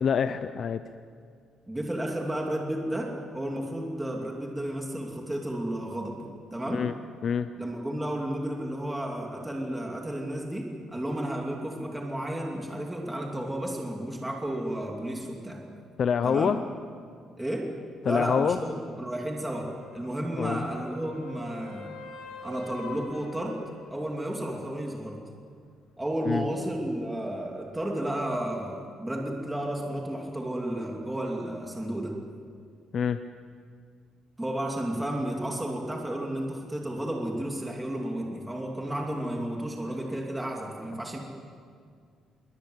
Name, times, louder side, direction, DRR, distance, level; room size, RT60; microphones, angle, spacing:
voice 1, 0.0-0.8 6.7-6.9 7.2-7.5 16.0-16.6 18.0-18.6 20.4-20.6 26.2-26.5 32.9-33.2, left 7 dB, 45° left, 10 dB, 0.8 m, -26 dB
voice 2, 1.7-6.2 6.5-6.9 7.6-15.7 16.2-16.6 17.4-17.7 18.0-21.9 22.4-23.6 23.9-25.2 26.0-32.2 34.4-41.2, right 1 dB, 10° right, 0 dB, 2.9 m, -32 dB
sound 1, 18.6-24.2 28.3-28.4, left 3 dB, 85° left, 8.0 m, -45 dB
27.5 x 23.0 x 8.3 m, 2.2 s
cardioid pair, 150°, 0 cm